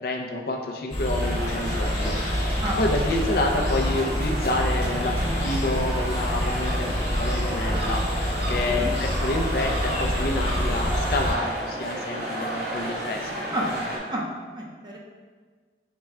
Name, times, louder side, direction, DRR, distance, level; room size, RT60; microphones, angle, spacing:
voice 1, 0.0-2.4 2.8-13.5, left 2 dB, 55° left, 2 dB, 0.4 m, -28 dB
sound 1, 0.9-11.3, equal, 40° left, 1.2 m, -27 dB
sound 2, 1.2-14.0, right 1 dB, 60° right, 0.8 m, -33 dB
sound 3, 3.0-10.7, right 1 dB, 75° right, 1.1 m, -39 dB
voice 2, 14.5-15.0, right 1 dB, 25° right, -2 dB, 0.5 m, -30 dB
5.7 x 2.1 x 3.5 m, 1.5 s
head